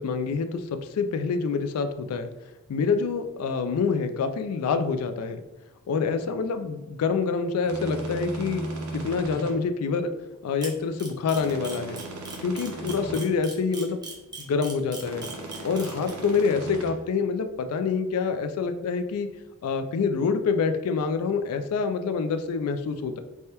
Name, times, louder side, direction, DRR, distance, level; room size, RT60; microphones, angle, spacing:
voice 1, 0.0-2.3 2.7-5.4 5.9-10.1 10.4-12.0 12.4-14.0 14.4-15.3 15.6-19.3 19.6-23.2, left 5 dB, 80° left, 9 dB, 0.3 m, -26 dB
sound 1, 7.6-9.5 11.3-13.2 15.0-16.9, right 2 dB, 80° right, 0.7 m, -36 dB
Camera, 10.6-16.1, right 3 dB, 20° right, 0.6 m, -39 dB
3.4 x 2.1 x 2.8 m, 1.1 s
head